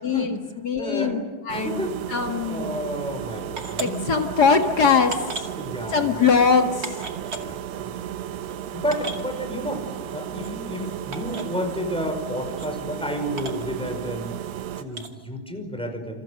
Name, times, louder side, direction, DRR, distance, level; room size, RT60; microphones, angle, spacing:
voice 1, 0.0-1.2 1.4-2.8 3.8-5.5 5.9-7.0, left 5 dB, 85° left, 4 dB, 0.8 m, -22 dB
voice 2, 0.8-1.3 1.6-4.0 5.6-6.1 7.4-7.6 8.7-9.9 10.1-14.3 14.8-16.2, equal, ahead, 4 dB, 4.8 m, -31 dB
sound 1, 1.5-14.8, right 10 dB, 80° right, 3.5 m, -34 dB
sound 2, 3.6-3.9 4.6-4.7 5.1-5.5 6.3-6.4 6.8-7.4 8.2-8.3 8.5-8.6 8.9-9.2 10.4-10.5 11.1-11.4 12.4-12.7 13.4-13.6 14.9-15.1, right 3 dB, 30° right, 1.8 m, -34 dB
29.0 x 28.5 x 6.6 m, 1.4 s
omnidirectional pair, 4.9 m